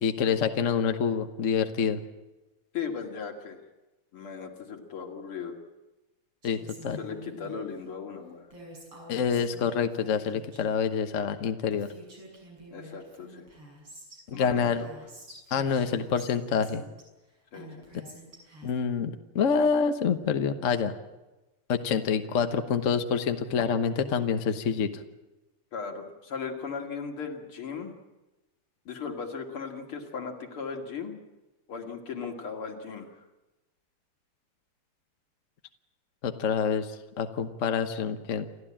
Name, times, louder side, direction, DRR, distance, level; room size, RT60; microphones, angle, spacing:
voice 1, 0.0-2.0 6.4-7.0 9.1-11.9 14.3-14.8 15.5-16.8 18.6-20.9 21.7-24.9 36.2-36.9 37.2-38.5, left 6 dB, 45° left, 7 dB, 1.2 m, -27 dB
voice 2, 2.7-3.6 4.1-5.5 7.0-8.5 12.7-13.5 14.3-14.9 17.5-17.9 25.7-27.9 28.9-31.1 31.7-33.1, left 5 dB, 80° left, 2 dB, 3.2 m, -37 dB
Female speech woman speaking, 6.4-7.7 8.5-10.8 11.4-11.5 11.7-14.2 14.6-17.0 17.5-18.7, right 1 dB, 80° right, 7.1 m, -48 dB
29.0 x 13.0 x 8.8 m, 1.1 s
omnidirectional pair, 2.4 m